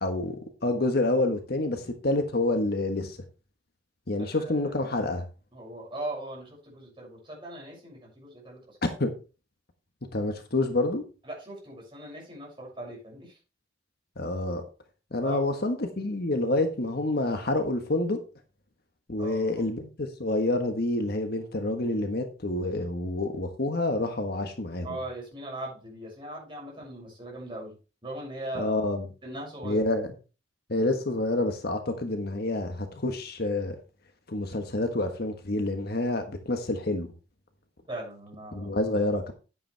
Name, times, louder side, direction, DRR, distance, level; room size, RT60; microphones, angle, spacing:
voice 1, 0.0-3.2 4.1-5.2 8.8-9.1 10.1-11.0 14.2-14.6 15.1-18.2 19.1-24.9 28.5-29.1 29.6-30.1 30.7-33.8 34.3-37.1 38.5-39.3, left 2 dB, 55° left, 1.4 m, -28 dB
voice 2, 4.2-4.7 5.5-8.9 11.2-13.4 15.2-15.4 19.2-19.6 24.8-27.8 28.0-28.8 29.2-29.9 37.9-38.7, right 1 dB, 25° right, 6.7 m, -39 dB
10.5 x 8.6 x 3.4 m
head